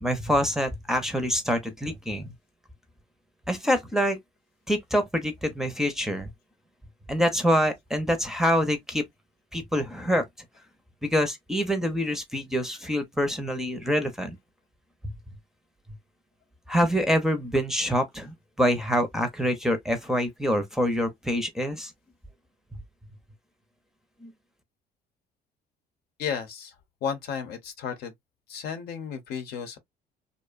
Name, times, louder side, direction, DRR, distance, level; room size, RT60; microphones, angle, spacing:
voice 1, 0.0-2.3 3.5-4.2 4.7-6.3 7.1-9.0 9.5-10.2 11.1-14.4 16.7-21.9 24.2-24.3, equal, 5° right, 0.6 m, -26 dB
voice 2, 26.2-26.8 27.0-28.1 28.5-29.8, left 7 dB, 70° left, 0.8 m, -33 dB
2.5 x 2.1 x 2.4 m
cardioid pair, 110°, 17 cm